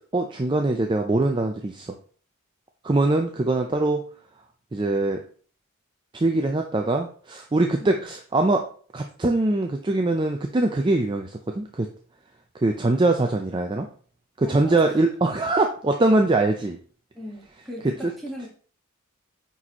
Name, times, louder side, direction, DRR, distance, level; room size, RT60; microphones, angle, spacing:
voice 1, 0.1-2.0 2.8-4.0 4.7-5.2 6.1-8.7 8.9-11.9 12.5-13.9 14.4-16.8 18.0-18.1, right 2 dB, 20° right, 4 dB, 0.4 m, -22 dB
voice 2, 14.4-15.0 17.1-18.5, equal, ahead, -2 dB, 1.5 m, -38 dB
9.1 x 4.2 x 2.9 m, 0.44 s
head